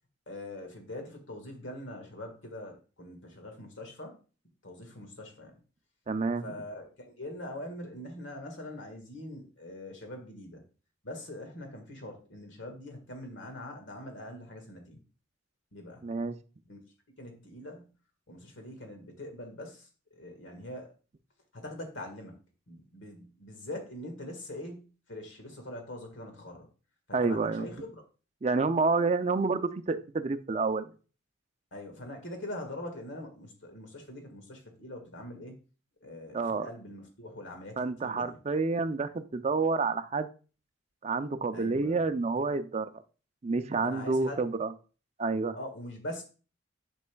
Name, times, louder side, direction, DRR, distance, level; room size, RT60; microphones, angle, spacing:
voice 1, 0.3-4.2 4.6-5.6 6.4-10.6 11.0-15.0 15.7-16.0 16.7-16.8 17.2-17.9 18.3-20.9 21.5-22.4 22.7-26.7 27.1-28.0 31.7-35.6 36.0-38.4 41.5-42.1 43.8-44.5 45.5-46.2, left 1 dB, 65° left, 4 dB, 1.7 m, -43 dB
voice 2, 6.1-6.5 16.0-16.4 27.1-27.7 28.4-30.9 36.3-36.7 37.8-40.3 41.0-43.0 43.4-44.7 45.2-45.6, right 4 dB, 35° right, 10 dB, 0.5 m, -29 dB
8.3 x 5.4 x 2.3 m, 0.35 s
head